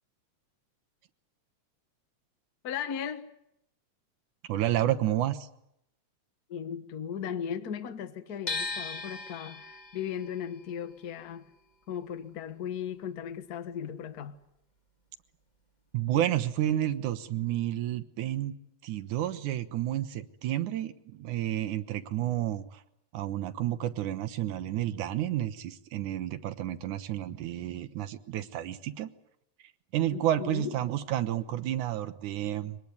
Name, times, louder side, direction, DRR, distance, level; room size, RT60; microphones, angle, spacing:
voice 1, 2.6-3.3 6.5-11.5 11.9-14.4 30.1-30.8, left 8 dB, 45° left, 1.3 m, -37 dB
voice 2, 4.5-5.5 15.9-18.5 18.8-22.8 23.1-29.1 29.9-32.8, right 12 dB, 85° right, 2.6 m, -30 dB
sound 1, 8.5-14.5 14.8-16.1, left 3 dB, 20° left, 1.3 m, -40 dB
24.5 x 19.5 x 9.6 m
omnidirectional pair, 3.4 m